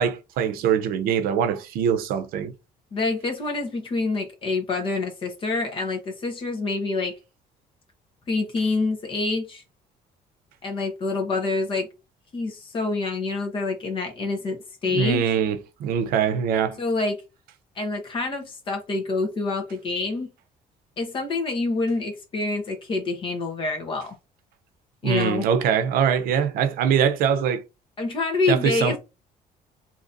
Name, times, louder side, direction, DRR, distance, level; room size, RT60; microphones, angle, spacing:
voice 1, 0.0-2.5 14.9-16.8 25.0-27.6 28.5-29.0, right 7 dB, 75° right, 0.6 m, -23 dB
voice 2, 2.9-7.1 8.3-9.6 10.6-11.9 12.3-15.3 16.8-17.2 17.8-20.3 21.0-24.2 25.0-25.5 28.0-29.0, left 3 dB, 35° left, 1.0 m, -27 dB
3.9 x 2.8 x 2.6 m
cardioid pair, 165°, 15 cm